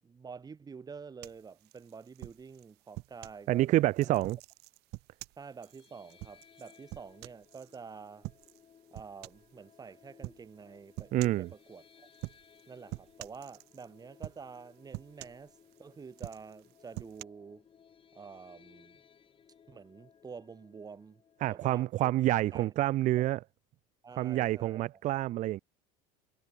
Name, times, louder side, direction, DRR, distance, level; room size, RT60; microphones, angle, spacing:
voice 1, 0.0-3.7 4.0-4.2 5.4-8.3 8.9-12.1 12.7-17.6 18.1-19.0 19.7-21.2 21.5-22.7 23.2-23.3 24.0-24.9, right 5 dB, 20° right, 3.6 m, -48 dB
sound 1, 1.2-3.4 4.0-7.8 8.2-8.6 8.9-9.5 10.2-10.5 11.0-11.5 12.1-12.6 12.9-13.9 14.2-14.6 14.9-15.8 16.1-17.2, right 21 dB, 60° right, 1.4 m, -45 dB
voice 2, 3.5-4.4 11.1-11.5 21.4-23.4 24.2-25.6, right 15 dB, 40° right, 0.5 m, -28 dB
sound 2, 5.6-21.7, left 7 dB, 25° left, 5.1 m, -62 dB
cardioid pair, 135°, 19 cm